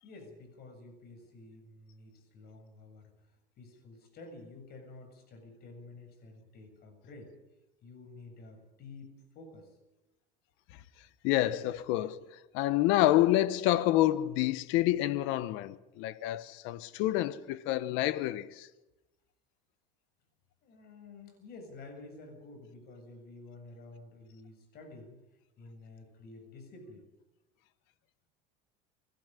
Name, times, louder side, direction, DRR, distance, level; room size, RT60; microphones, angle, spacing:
voice 1, 0.0-3.1 3.6-7.3 7.8-9.8 20.6-25.2 25.6-27.0, left 3 dB, 50° left, 7.3 m, -50 dB
voice 2, 11.2-18.7, left 14 dB, 70° left, 1.3 m, -28 dB
25.5 x 11.5 x 10.0 m
supercardioid pair, 125°, 21 cm